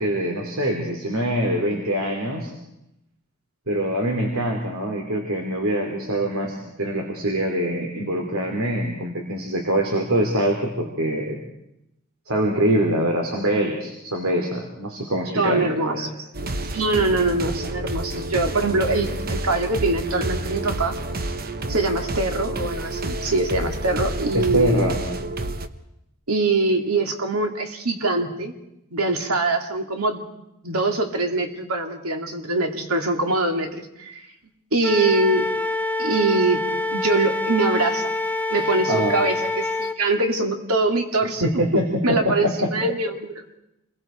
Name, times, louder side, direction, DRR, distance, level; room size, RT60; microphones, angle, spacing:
voice 1, 0.0-2.5 3.7-11.4 12.3-16.1 24.3-24.9 38.9-39.3 41.4-42.7, right 1 dB, 70° right, 1 dB, 3.1 m, -24 dB
voice 2, 15.4-16.3 16.7-21.0 21.7-24.8 26.3-28.5 28.9-30.2 30.6-34.2 34.7-35.5 36.0-36.6 36.9-38.1 38.5-41.4 42.0-43.4, right 2 dB, 85° right, 4 dB, 2.8 m, -23 dB
sound 1, 16.3-25.7, right 2 dB, 45° right, 1.1 m, -29 dB
Wind instrument woodwind instrument, 34.8-40.0, left 2 dB, 5° left, 0.7 m, -26 dB
28.5 x 22.0 x 4.5 m, 0.86 s
head